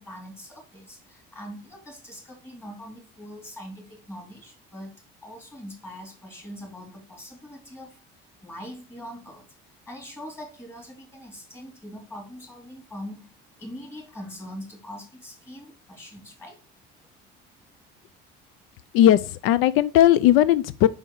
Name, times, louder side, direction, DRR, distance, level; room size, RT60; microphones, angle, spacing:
voice 1, 0.0-4.9 5.2-8.0 8.4-9.4 9.9-13.3 13.6-16.6, equal, 10° left, 3.3 m, -42 dB
voice 2, 18.9-20.9, left 12 dB, 85° left, 0.4 m, -17 dB
5.5 x 5.5 x 4.6 m
cardioid pair, 135°, 21 cm